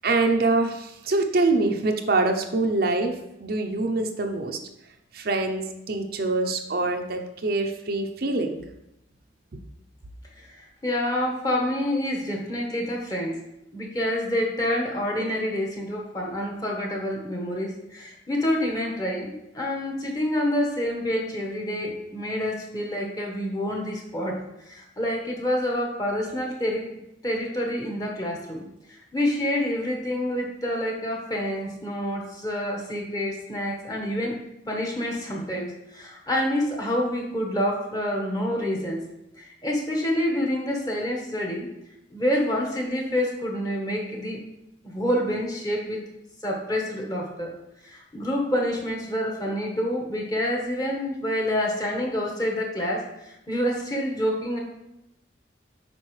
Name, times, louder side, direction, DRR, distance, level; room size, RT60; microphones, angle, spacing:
voice 1, 0.0-3.1 3.4-4.6 5.1-8.6, right 3 dB, 55° right, 4 dB, 0.6 m, -24 dB
voice 2, 10.8-13.3 13.7-26.8 27.2-28.6 29.1-34.4 34.7-39.0 39.4-41.7 42.1-44.4 44.8-46.0 46.4-47.5 47.8-53.1 53.5-54.6, left 1 dB, 20° left, -1 dB, 1.3 m, -27 dB
8.4 x 5.2 x 3.2 m, 0.87 s
head